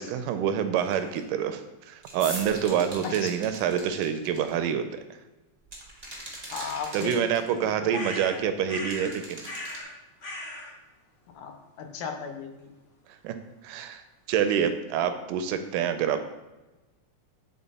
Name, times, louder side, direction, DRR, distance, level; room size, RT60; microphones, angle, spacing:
voice 1, 0.0-1.6 1.9-5.0 6.6-9.5 13.2-13.4 13.6-14.0 14.3-16.2, right 8 dB, 85° right, 9 dB, 2.1 m, -27 dB
sound 1, 0.8-1.2 2.0-4.5 5.7-7.7 8.9-9.8, right 1 dB, 30° right, 0.7 m, -43 dB
sound 2, 2.0-4.3 5.1-5.2 5.4-5.5 5.7-6.2 6.6-6.7 6.8-7.3 7.6-7.8 8.1-8.4, equal, 15° left, 0.6 m, -41 dB
voice 2, 6.5-7.2 7.6-8.0 11.4-12.7, left 6 dB, 80° left, 4 dB, 2.5 m, -36 dB
sound 3, 7.9-9.1 9.4-9.9 10.2-10.7, left 1 dB, 45° left, 1.5 m, -37 dB
9.7 x 3.9 x 4.1 m, 1.1 s
omnidirectional pair, 3.8 m